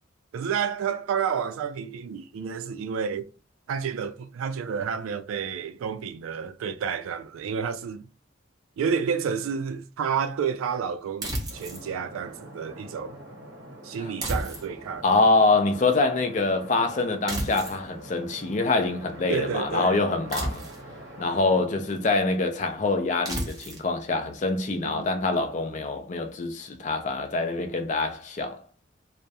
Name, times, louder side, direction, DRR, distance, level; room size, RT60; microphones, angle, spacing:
voice 1, 0.3-3.2 3.7-8.1 8.8-13.2 13.8-15.0 19.3-20.0 24.8-25.4, right 6 dB, 90° right, 0.3 m, -30 dB
sound 1, 11.2-11.9 14.2-15.0 17.3-17.9 20.3-20.9 23.3-23.9, right 1 dB, 20° right, 0.5 m, -32 dB
sound 2, 11.5-22.1, right 1 dB, 55° right, 0.8 m, -45 dB
voice 2, 15.0-20.6 21.2-28.6, left 3 dB, 35° left, 0.4 m, -25 dB
2.2 x 2.0 x 2.7 m
head